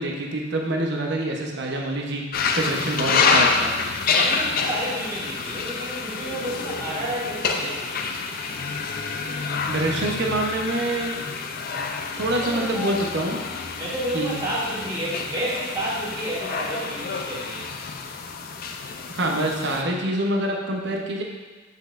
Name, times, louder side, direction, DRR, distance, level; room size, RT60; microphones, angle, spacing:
voice 1, 0.0-2.2 2.5-3.7 9.7-11.1 12.2-13.4 14.1-14.4 19.1-21.2, right 1 dB, 65° right, 0 dB, 0.9 m, -26 dB
sound 1, 2.3-19.8, left 4 dB, 50° left, 0.4 m, -27 dB
voice 2, 4.1-8.1 12.3-12.9 13.7-17.8, right 1 dB, 25° right, -9 dB, 1.7 m, -30 dB
7.8 x 5.5 x 2.5 m, 1.3 s
head